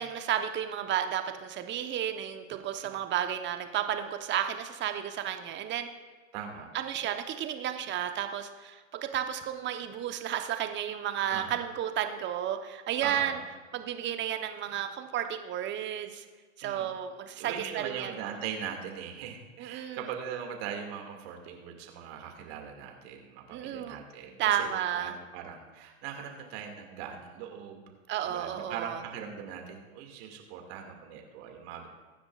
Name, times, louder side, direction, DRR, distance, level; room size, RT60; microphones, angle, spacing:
voice 1, 0.0-5.9 6.7-13.4 13.7-16.2 16.6-18.3 19.6-20.1 23.5-24.0 24.4-25.2 28.1-29.0, right 10 dB, 25° right, 7 dB, 1.1 m, -32 dB
voice 2, 6.3-6.7 11.3-11.6 13.0-13.4 16.6-16.9 17.4-24.7 24.9-27.8 28.2-31.9, right 8 dB, 50° right, 3 dB, 2.4 m, -40 dB
23.0 x 10.0 x 2.5 m, 1.4 s
hypercardioid pair, 105°, 41 cm